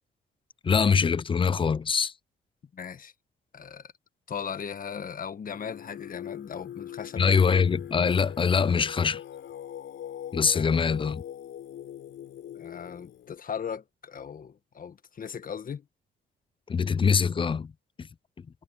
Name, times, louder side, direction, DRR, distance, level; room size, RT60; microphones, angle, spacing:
voice 1, 0.6-2.1 7.2-9.2 10.3-11.2 16.7-17.7, left 6 dB, 25° left, 0.5 m, -23 dB
voice 2, 2.7-3.1 3.5-3.9 4.3-7.3 10.5-10.7 12.5-15.8, left 7 dB, 45° left, 1.4 m, -38 dB
Singing, 5.5-13.3, left 11 dB, 70° left, 5.7 m, -41 dB
cardioid pair, 90°, 20 cm